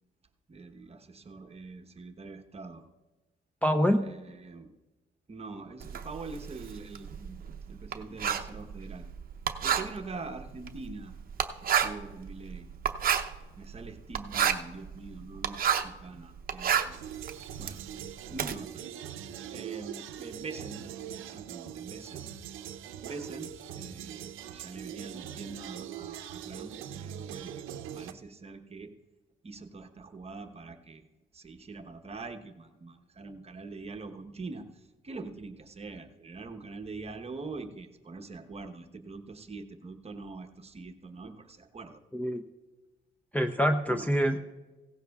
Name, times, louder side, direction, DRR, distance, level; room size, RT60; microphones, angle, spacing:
voice 1, 0.5-2.9 4.0-4.7 5.3-9.1 9.6-11.1 11.6-12.7 13.6-17.0 17.6-17.8 18.3-18.9 19.2-22.3 23.0-27.7 27.9-28.9 29.4-31.0 31.3-42.0 43.9-44.1, right 3 dB, 30° right, 5 dB, 1.0 m, -44 dB
voice 2, 3.6-4.0 42.1-42.4 43.3-44.4, equal, 10° left, 3 dB, 0.6 m, -25 dB
Writing, 5.8-16.0 16.4-18.5, right 8 dB, 45° right, 0.7 m, -30 dB
sound 1, 16.9-28.1, right 9 dB, 90° right, 0.6 m, -42 dB
16.5 x 14.5 x 2.4 m, 1.1 s
cardioid pair, 90°, 20 cm